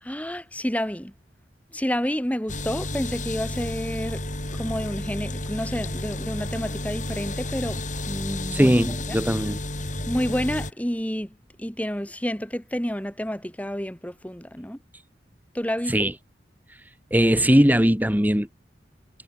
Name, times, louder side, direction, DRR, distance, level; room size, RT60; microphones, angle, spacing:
voice 1, 0.0-1.1 1.7-4.2 4.5-8.8 9.1-9.2 10.1-11.3 11.6-14.8 15.5-16.1, equal, 10° left, 2.6 m, -29 dB
sound 1, 2.5-10.7, left 1 dB, 45° left, 7.9 m, -32 dB
voice 2, 8.5-9.6 15.9-16.1 17.1-18.5, equal, 10° right, 2.2 m, -19 dB
head